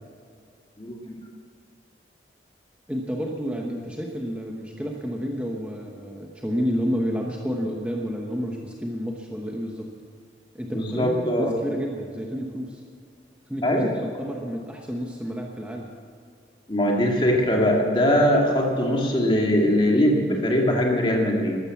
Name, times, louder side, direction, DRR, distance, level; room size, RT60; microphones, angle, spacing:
voice 1, 2.9-9.9 10.5-12.8 13.5-15.9, equal, 5° right, 0 dB, 1.0 m, -30 dB
voice 2, 10.7-11.5 13.6-13.9 16.7-21.6, equal, 25° left, 0 dB, 2.3 m, -21 dB
13.0 x 13.0 x 7.2 m, 2.2 s
head